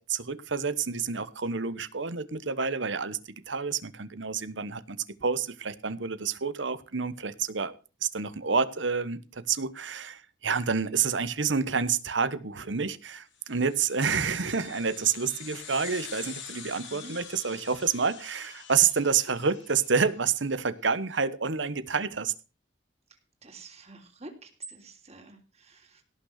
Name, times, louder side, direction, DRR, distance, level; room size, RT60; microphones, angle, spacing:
voice 1, 0.0-3.2 3.5-7.7 8.0-22.3, right 5 dB, 75° right, 1.1 m, -28 dB
sound 1, 13.4-20.2, left 7 dB, 85° left, 4.1 m, -45 dB
voice 2, 23.1-26.0, right 2 dB, 35° right, 3.3 m, -48 dB
17.5 x 6.5 x 6.5 m
head